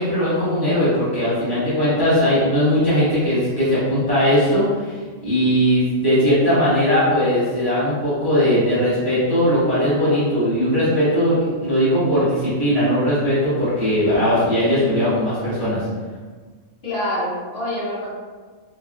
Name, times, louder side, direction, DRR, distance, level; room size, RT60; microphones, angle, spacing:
voice 1, 0.0-15.8, equal, 20° right, -11 dB, 0.7 m, -19 dB
voice 2, 16.8-18.1, left 1 dB, 50° left, -10 dB, 1.3 m, -25 dB
3.1 x 2.3 x 2.5 m, 1.5 s
omnidirectional pair, 1.4 m